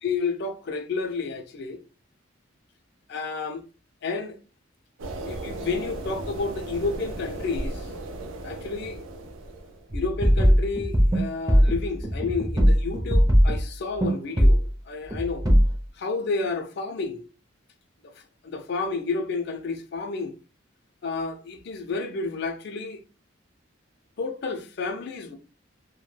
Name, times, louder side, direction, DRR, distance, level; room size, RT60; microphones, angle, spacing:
voice 1, 0.0-1.8 3.1-3.6 4.0-4.4 5.2-7.9 8.4-9.0 9.9-15.5 16.0-17.3 18.0-20.3 21.0-23.0 24.2-25.4, left 4 dB, 55° left, 0.4 m, -31 dB
sound 1, 5.0-9.9, right 2 dB, 80° right, 0.5 m, -36 dB
sound 2, 9.9-13.6 14.0-14.1 14.4-14.7 15.1-15.8, equal, 15° right, 0.5 m, -20 dB
2.1 x 2.1 x 3.2 m
head